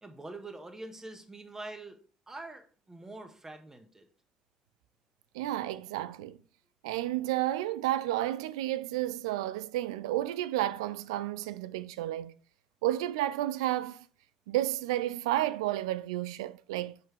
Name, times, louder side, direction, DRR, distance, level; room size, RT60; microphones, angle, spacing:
voice 1, 0.0-2.0 2.3-4.1, right 2 dB, 15° right, 1.6 m, -45 dB
voice 2, 5.3-6.4 6.8-12.3 12.8-14.0 14.5-17.0, right 14 dB, 70° right, 0.4 m, -31 dB
7.1 x 6.3 x 3.4 m
figure-of-eight pair, 50°, 3 cm